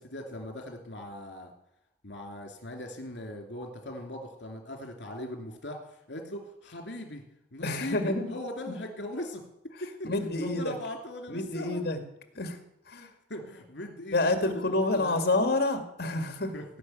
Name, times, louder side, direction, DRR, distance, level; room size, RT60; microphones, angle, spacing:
voice 1, 0.0-1.5 2.0-7.2 7.5-9.4 9.8-9.9 10.6-11.8 12.9-14.2 14.9-15.2 16.5-16.6, left 1 dB, 75° left, 3 dB, 2.9 m, -39 dB
voice 2, 7.6-8.3 8.7-8.8 10.0-10.7 11.3-12.0 12.3-12.6 12.9-13.1 14.1-16.5, left 2 dB, 60° left, 6 dB, 2.1 m, -28 dB
17.5 x 6.3 x 9.3 m, 0.81 s
head